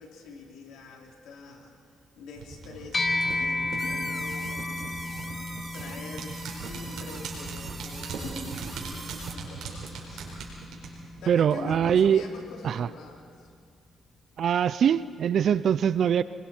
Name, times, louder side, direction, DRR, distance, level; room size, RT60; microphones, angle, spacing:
voice 1, 0.0-1.7 2.2-4.7 5.2-10.4 10.6-10.9 11.2-13.5, left 4 dB, 85° left, 0 dB, 3.2 m, -45 dB
sound 1, 2.4-11.8 12.1-12.2, right 4 dB, 80° right, 4.7 m, -39 dB
sound 2, 2.9-12.6, left 2 dB, 25° left, 1.3 m, -35 dB
sound 3, 3.8-9.3, right 5 dB, 45° right, 1.1 m, -44 dB
voice 2, 11.3-12.2 12.6-12.9 14.4-16.2, right 8 dB, 60° right, 16 dB, 0.5 m, -23 dB
27.0 x 22.0 x 4.5 m, 2.2 s
cardioid pair, 90°, 0 cm